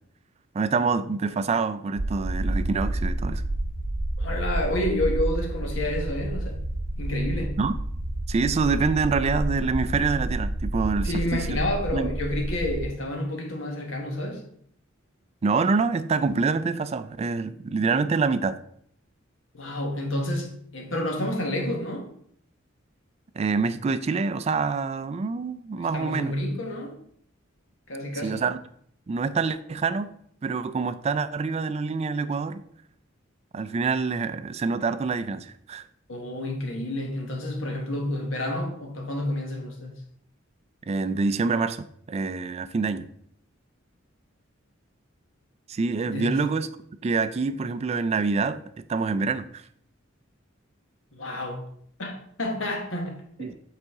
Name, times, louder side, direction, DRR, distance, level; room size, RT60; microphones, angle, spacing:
voice 1, 0.5-3.4 7.6-7.8 8.3-11.6 11.9-12.1 15.4-18.6 23.4-26.3 28.2-28.6 29.1-30.1 30.4-32.6 33.5-35.9 40.9-43.1 45.7-46.7 47.0-48.6 48.9-49.6 53.4-53.6, right 4 dB, 30° right, 0.3 m, -26 dB
sound 1, 2.0-12.9, right 1 dB, 70° right, 0.8 m, -29 dB
voice 2, 4.2-6.6 7.0-7.6 11.0-14.4 19.5-22.0 25.8-26.9 27.9-28.4 36.1-40.0 46.1-46.4 51.1-51.6 52.0-53.6, left 1 dB, 75° left, 1.3 m, -30 dB
8.2 x 4.1 x 3.5 m
head